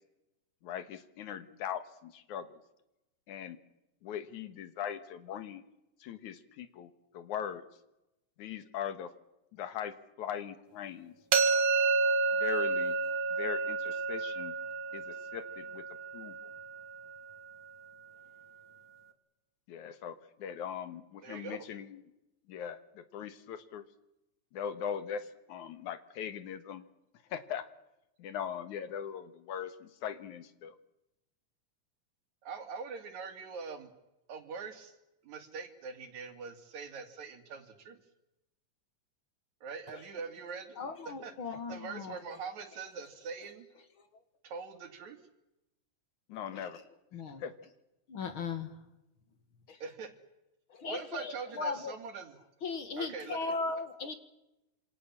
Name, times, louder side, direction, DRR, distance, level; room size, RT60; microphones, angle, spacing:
voice 1, 0.6-2.6 3.3-3.6 4.0-5.6 6.0-7.6 8.4-9.1 9.5-11.1 12.4-13.0 13.3-14.6 14.9-15.8 16.1-16.4 19.7-22.0 22.5-23.8 24.5-26.9 27.3-27.6 28.2-30.7 46.3-46.8 47.4-47.5, left 8 dB, 80° left, 12 dB, 2.8 m, -40 dB
sound 1, 11.3-17.1, right 4 dB, 45° right, 2.9 m, -30 dB
voice 2, 21.2-21.7 32.4-33.9 34.3-34.9 35.2-38.0 39.6-40.8 41.1-41.3 41.7-43.7 44.4-45.2 49.8-50.1 50.8-52.4 53.0-53.5, right 5 dB, 70° right, 7 dB, 3.8 m, -43 dB
voice 3, 40.8-42.2 47.1-47.4 48.1-48.7 50.8-51.9 52.6-54.1, left 4 dB, 50° left, 9 dB, 2.2 m, -37 dB
27.0 x 26.5 x 7.4 m, 0.94 s
omnidirectional pair, 3.4 m